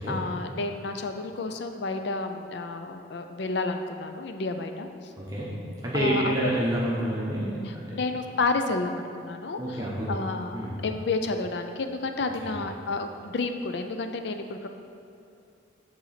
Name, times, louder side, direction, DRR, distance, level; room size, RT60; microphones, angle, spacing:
voice 1, 0.0-4.9 5.9-6.6 7.6-14.7, left 3 dB, 60° left, 6 dB, 0.4 m, -31 dB
voice 2, 5.2-5.5 5.8-7.9 9.5-10.1 10.5-10.8, right 1 dB, 20° right, -6 dB, 0.9 m, -28 dB
7.9 x 4.0 x 5.7 m, 2.6 s
head